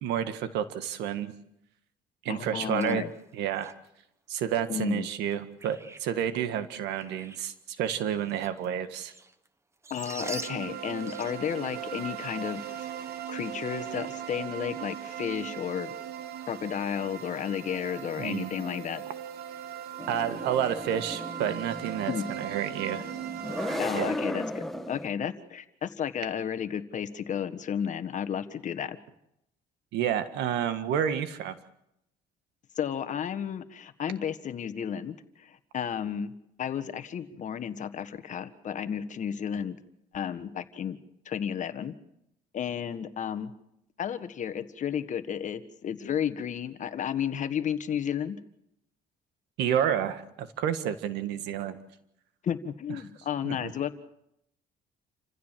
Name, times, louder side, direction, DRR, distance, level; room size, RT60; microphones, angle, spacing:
voice 1, 0.0-1.3 2.2-3.0 3.3-3.7 4.3-9.1 18.2-18.5 20.1-23.1 23.9-24.2 29.9-31.6 49.6-51.8 53.4-53.7, right 9 dB, 85° right, 10 dB, 1.7 m, -30 dB
voice 2, 2.3-3.1 4.7-5.1 9.9-12.9 13.3-15.9 16.5-19.0 22.1-22.3 23.8-29.0 32.8-36.3 36.6-39.8 40.1-41.0 41.2-41.9 42.5-43.5 44.0-48.4 52.4-54.0, left 8 dB, 45° left, 11 dB, 1.5 m, -32 dB
sound 1, 2.6-3.9 4.4-4.5 5.2-6.1 6.4-7.5 7.8-9.5 9.7-12.2 12.4-12.5 12.8-12.9 13.4-13.6 13.9-14.0, right 2 dB, 15° right, 1.1 m, -45 dB
sound 2, 10.2-23.8, right 10 dB, 70° right, 1.5 m, -39 dB
sound 3, 20.0-25.1, left 1 dB, ahead, 1.5 m, -36 dB
28.5 x 15.5 x 7.6 m, 0.82 s
cardioid pair, 110°, 17 cm